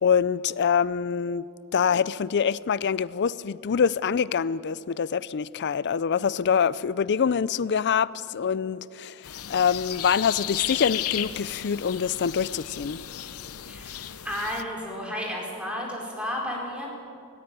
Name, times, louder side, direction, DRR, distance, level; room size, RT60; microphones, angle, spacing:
voice 1, 0.0-1.4 1.7-13.0 13.9-14.0, left 7 dB, 50° left, 0.4 m, -25 dB
sound 1, 9.2-14.6, left 11 dB, 75° left, 0.8 m, -34 dB
voice 2, 13.6-16.9, left 1 dB, 5° right, 4.6 m, -32 dB
17.5 x 17.5 x 9.1 m
head